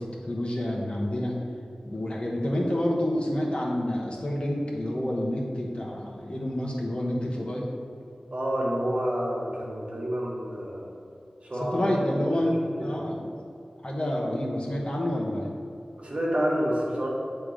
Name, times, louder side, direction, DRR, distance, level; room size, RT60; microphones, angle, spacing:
voice 1, 0.0-1.3 1.8-7.7 11.6-13.3 13.8-15.5, left 1 dB, 40° left, -3 dB, 1.3 m, -28 dB
voice 2, 8.3-10.9 11.4-12.3 12.8-12.9 16.0-17.1, equal, 50° right, -4 dB, 1.6 m, -29 dB
7.3 x 3.4 x 5.1 m, 2.5 s
cardioid pair, 40°, 3 cm